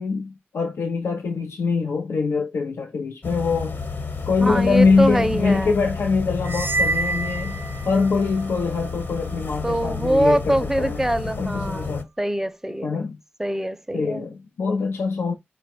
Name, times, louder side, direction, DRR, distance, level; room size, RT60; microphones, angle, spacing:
voice 1, 0.0-3.8 4.3-12.1 12.8-13.2 13.9-15.3, left 4 dB, 90° left, 0.6 m, -23 dB
sound 1, 3.2-12.0, left 4 dB, 60° left, 1.1 m, -31 dB
voice 2, 4.4-5.8 9.6-13.0 13.4-14.2, right 1 dB, 10° right, 0.6 m, -24 dB
sound 2, 6.4-8.3, right 3 dB, 65° right, 0.4 m, -27 dB
4.8 x 2.3 x 4.1 m
cardioid pair, 55°, 4 cm